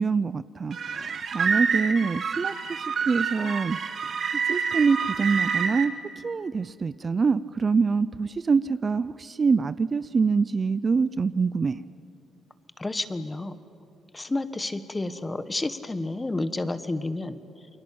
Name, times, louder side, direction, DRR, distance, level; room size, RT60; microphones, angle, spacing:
voice 1, 0.0-3.8 4.0-4.2 4.5-5.9 6.2-11.8, right 5 dB, 35° right, 16 dB, 0.6 m, -25 dB
sound 1, 0.7-5.9, right 6 dB, 55° right, 2.3 m, -28 dB
voice 2, 12.8-13.6 14.1-17.7, left 2 dB, 20° left, 12 dB, 1.5 m, -30 dB
29.5 x 22.5 x 8.7 m, 2.6 s
cardioid pair, 90°, 0 cm